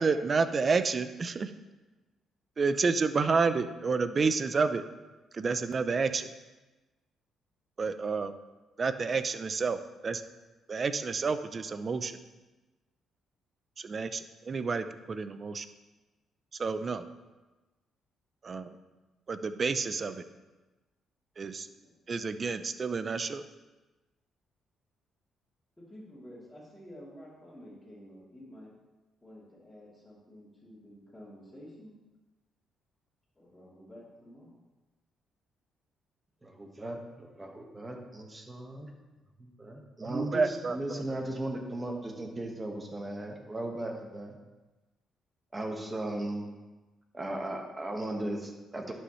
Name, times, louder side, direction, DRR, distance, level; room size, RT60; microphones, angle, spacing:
voice 1, 0.0-1.5 2.6-4.8 5.3-6.3 7.8-8.3 8.8-10.2 10.7-12.2 13.8-15.7 16.6-17.0 18.4-18.7 19.3-20.2 21.4-21.7 22.1-23.4 40.0-41.0, right 4 dB, 40° right, 11 dB, 0.5 m, -29 dB
voice 2, 21.6-21.9 25.8-28.7 29.2-32.0 33.3-34.6, equal, 10° left, -9 dB, 3.0 m, -50 dB
voice 3, 36.4-38.9 39.4-44.4 45.5-46.5 47.1-48.9, right 1 dB, 20° right, 2 dB, 1.4 m, -37 dB
11.0 x 6.3 x 3.1 m, 1.1 s
cardioid pair, 90°, 0 cm